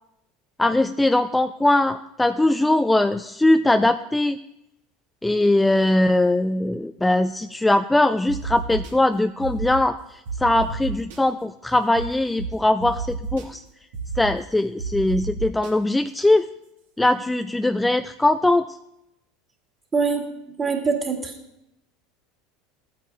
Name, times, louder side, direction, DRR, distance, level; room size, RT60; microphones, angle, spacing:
voice 1, 0.6-4.4 5.2-10.0 10.4-13.6 14.2-16.5 17.0-18.7, left 1 dB, 10° left, 9 dB, 0.4 m, -20 dB
sound 1, 8.3-8.9 9.4-9.8 10.3-11.2 11.9-12.0 12.4-12.5 12.8-13.4 13.9-14.3 14.8-15.7, right 5 dB, 75° right, 1.8 m, -31 dB
voice 2, 19.9-21.3, right 5 dB, 25° right, 2 dB, 2.1 m, -24 dB
15.0 x 8.8 x 2.5 m, 0.85 s
hypercardioid pair, 80°, 0 cm